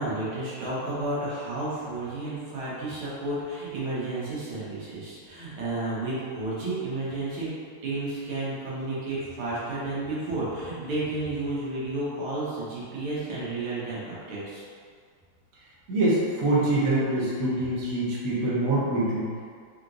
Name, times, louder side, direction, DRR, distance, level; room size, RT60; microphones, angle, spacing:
voice 1, 0.0-7.5 7.8-14.6, right 2 dB, 80° right, -9 dB, 1.9 m, -32 dB
voice 2, 15.9-19.4, right 1 dB, 55° right, -7 dB, 1.1 m, -25 dB
4.9 x 2.9 x 2.5 m, 2.1 s
omnidirectional pair, 2.3 m